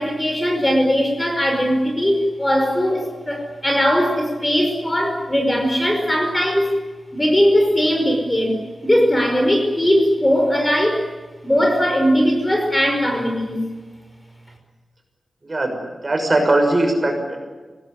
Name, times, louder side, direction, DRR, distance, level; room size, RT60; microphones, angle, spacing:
voice 1, 0.0-6.7 7.1-11.1 11.4-13.6, equal, 15° left, 3 dB, 5.2 m, -19 dB
voice 2, 15.4-15.8 16.0-17.4, right 2 dB, 35° right, 3 dB, 6.2 m, -19 dB
24.5 x 18.5 x 10.0 m, 1.3 s
wide cardioid pair, 110°, 0 cm